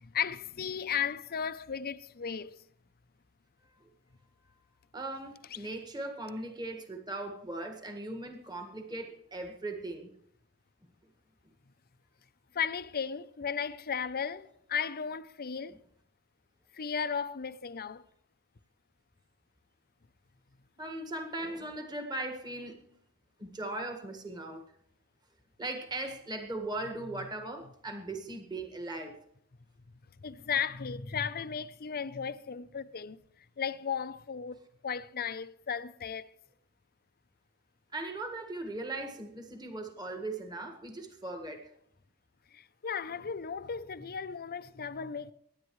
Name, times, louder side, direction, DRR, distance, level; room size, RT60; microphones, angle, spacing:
voice 1, 0.0-2.6 12.5-15.8 16.7-18.0 30.2-33.2 33.6-36.3 42.5-45.3, left 7 dB, 45° left, 0.6 m, -35 dB
voice 2, 4.9-10.1 20.8-22.8 23.4-24.6 25.6-29.2 37.9-41.7, right 2 dB, 20° right, 1.7 m, -39 dB
23.5 x 10.5 x 3.2 m
head